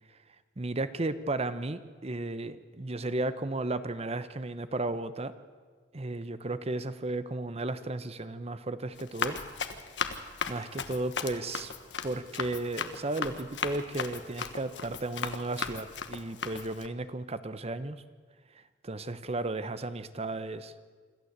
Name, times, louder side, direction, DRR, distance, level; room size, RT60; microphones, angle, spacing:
voice 1, 0.6-5.3 5.9-9.4 10.5-11.7 12.0-18.0 18.5-20.7, right 2 dB, 35° right, 13 dB, 0.9 m, -34 dB
Run, 9.0-16.9, left 5 dB, 80° left, 1.3 m, -37 dB
26.0 x 14.0 x 8.1 m, 1.6 s
head